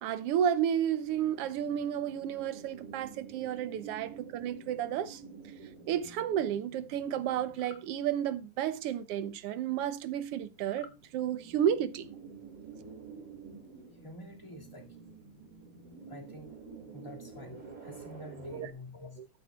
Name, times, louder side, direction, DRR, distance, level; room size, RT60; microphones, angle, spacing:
voice 1, 0.0-5.2 5.9-12.0 18.5-18.7, right 9 dB, 70° right, 1.5 m, -32 dB
sound 1, 1.0-8.3 8.7-8.8 9.0-9.5 10.2-18.7, right 5 dB, 30° right, 2.7 m, -49 dB
sound 2, 7.5-7.9 10.7-11.0, left 8 dB, 70° left, 0.9 m, -52 dB
voice 2, 13.9-15.1 16.1-16.5 16.9-19.3, left 1 dB, 10° left, 1.9 m, -48 dB
13.5 x 12.0 x 2.4 m
omnidirectional pair, 3.3 m